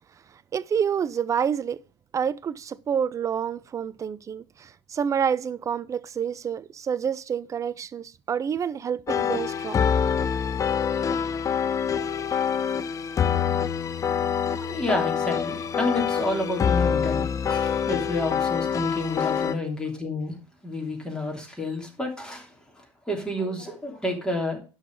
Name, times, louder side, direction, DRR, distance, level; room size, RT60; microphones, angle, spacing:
voice 1, 0.5-1.8 2.1-9.9, right 7 dB, 20° right, 0.5 m, -28 dB
sound 1, 9.1-19.5, left 7 dB, 20° left, 0.7 m, -25 dB
voice 2, 14.6-20.3 20.6-24.6, left 2 dB, 5° left, 3.0 m, -30 dB
11.5 x 4.0 x 6.6 m
figure-of-eight pair, 75°, 14 cm